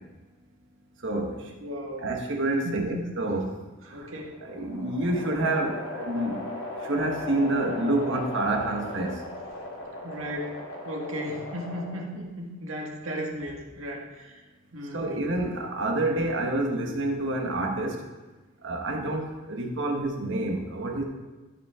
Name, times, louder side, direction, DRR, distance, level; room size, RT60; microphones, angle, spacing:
voice 1, 1.0-1.5 2.0-3.5 3.8-4.1 4.4-6.5 6.8-9.2 14.9-18.0 18.6-21.0, right 2 dB, 65° right, 2 dB, 1.5 m, -28 dB
voice 2, 1.6-2.1 2.6-3.1 3.9-4.4 10.0-14.4 14.7-15.2, equal, 85° right, -1 dB, 1.8 m, -36 dB
sound 1, 4.0-12.2, left 1 dB, 90° left, 2.2 m, -38 dB
14.0 x 5.5 x 3.7 m, 1.2 s
head